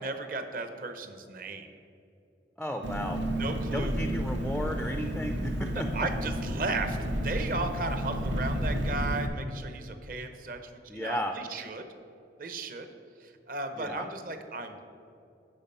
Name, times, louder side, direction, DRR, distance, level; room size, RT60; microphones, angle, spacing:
voice 1, 0.0-1.7 3.2-4.1 5.7-11.9 12.4-12.9 13.2-14.9, right 3 dB, 50° right, 7 dB, 0.7 m, -35 dB
voice 2, 2.6-3.2 3.7-6.1 10.9-11.4 13.8-14.1, equal, 5° left, 5 dB, 0.3 m, -34 dB
Engine, 2.8-9.3, equal, 90° right, 0.9 m, -31 dB
11.0 x 4.7 x 5.4 m, 2.6 s
head